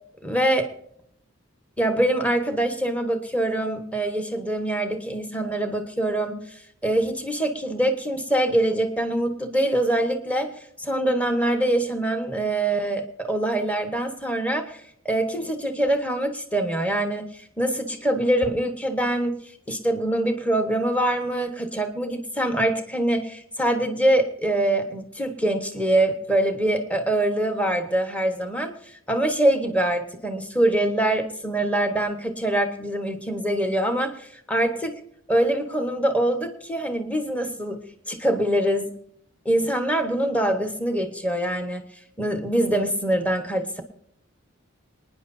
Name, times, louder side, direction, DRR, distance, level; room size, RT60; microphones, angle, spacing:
voice 1, 0.2-0.7 1.8-6.4 6.8-10.5 10.8-19.4 19.7-28.7 29.1-35.0 35.3-37.8 38.1-38.9 39.4-41.8 42.2-43.8, right 1 dB, 5° left, 6 dB, 1.3 m, -24 dB
26.0 x 10.0 x 2.7 m, 0.70 s
head